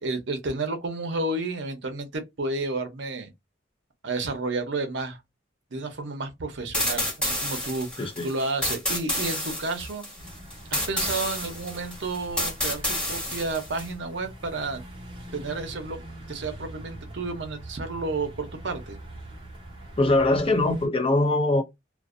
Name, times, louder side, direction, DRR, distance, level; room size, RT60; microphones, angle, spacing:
voice 1, 0.0-3.3 4.0-5.2 5.7-10.0 10.7-14.8 15.3-16.0 16.3-19.0, right 3 dB, 60° right, 0.7 m, -31 dB
sound 1, 6.7-13.9, left 1 dB, 5° left, 1.1 m, -29 dB
sound 2, 10.2-20.9, right 1 dB, 25° right, 0.8 m, -43 dB
voice 2, 20.0-21.6, left 2 dB, 30° left, 0.5 m, -22 dB
2.5 x 2.1 x 2.4 m
head